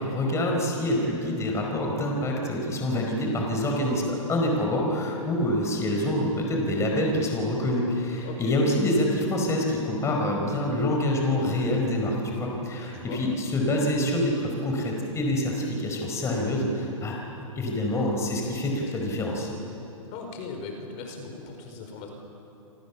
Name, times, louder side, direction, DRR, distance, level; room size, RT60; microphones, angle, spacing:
voice 1, 0.0-17.2 17.6-19.5, left 1 dB, 15° left, 0 dB, 4.7 m, -26 dB
voice 2, 20.1-22.1, left 4 dB, 35° left, 3 dB, 4.9 m, -39 dB
28.0 x 28.0 x 7.2 m, 3.0 s
hypercardioid pair, 145°, 18 cm